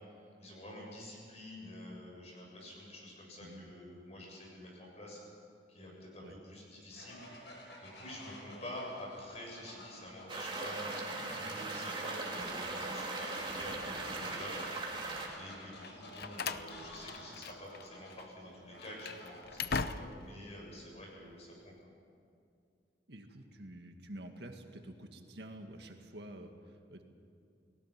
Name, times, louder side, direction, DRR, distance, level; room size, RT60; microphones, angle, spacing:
voice 1, 0.0-5.2 5.7-7.2 7.8-14.6 14.9-15.0 15.3-21.7, left 1 dB, 35° left, -2 dB, 7.6 m, -48 dB
voice 2, 3.4-3.7 6.2-6.3 23.1-27.0, right 1 dB, 65° right, 4 dB, 1.9 m, -49 dB
Fowl, 6.9-19.9, left 1 dB, 80° left, 5.4 m, -53 dB
sound 1, 10.3-15.3, right 2 dB, 30° right, 3.2 m, -39 dB
Slam, 15.8-17.8 18.1-18.3 18.8-20.4, left 5 dB, 60° left, 0.7 m, -40 dB
29.5 x 19.5 x 6.0 m, 2.5 s
head